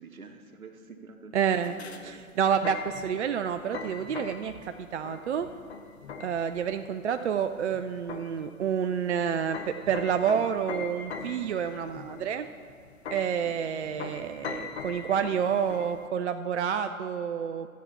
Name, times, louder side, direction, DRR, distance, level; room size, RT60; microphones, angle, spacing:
voice 1, 0.0-2.2 4.2-4.4 13.4-13.6, right 4 dB, 75° right, 6 dB, 1.2 m, -48 dB
voice 2, 1.3-1.8 2.0-5.5 6.2-12.5 13.1-17.7, right 8 dB, 55° right, 8 dB, 0.4 m, -29 dB
sound 1, 1.5-16.1, left 5 dB, 50° left, 1.0 m, -42 dB
12.5 x 8.1 x 4.3 m, 2.3 s
figure-of-eight pair, 120°, 42 cm